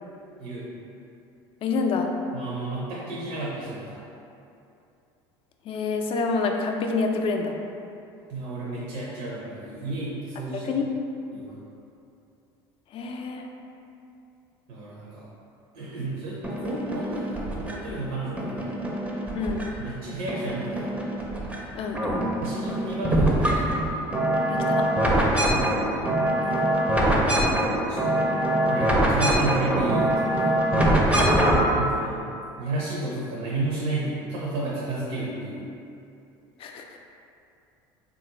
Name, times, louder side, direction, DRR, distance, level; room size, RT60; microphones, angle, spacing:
voice 1, 1.6-2.1 5.7-7.6 10.5-10.9 12.9-13.5 19.3-19.7 21.7-22.3 24.5-24.8 31.1-31.4 36.6-36.8, left 4 dB, 45° left, 3 dB, 0.4 m, -27 dB
voice 2, 2.3-4.0 8.3-10.8 11.3-11.6 14.7-15.3 15.7-18.8 19.8-20.9 22.4-23.8 25.4-26.6 27.5-28.3 28.6-30.5 31.7-32.2 32.6-35.7, right 2 dB, 65° right, -7 dB, 0.6 m, -32 dB
sound 1, 16.4-17.9 18.4-19.9 20.3-21.6 21.9-31.8, right 1 dB, 10° right, 0.5 m, -23 dB
3.5 x 2.4 x 2.9 m, 2.7 s
hypercardioid pair, 85°, 13 cm